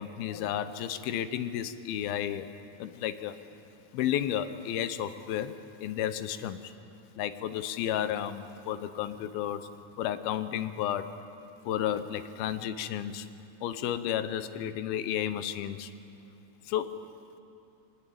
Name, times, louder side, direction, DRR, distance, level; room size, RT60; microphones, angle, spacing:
voice 1, 0.0-2.5 2.8-3.4 3.9-5.5 5.8-6.6 7.2-9.6 10.0-11.1 11.7-13.3 13.6-15.9 16.7-17.0, left 10 dB, 80° left, 11 dB, 2.7 m, -32 dB
25.0 x 20.5 x 8.7 m, 2.7 s
omnidirectional pair, 4.3 m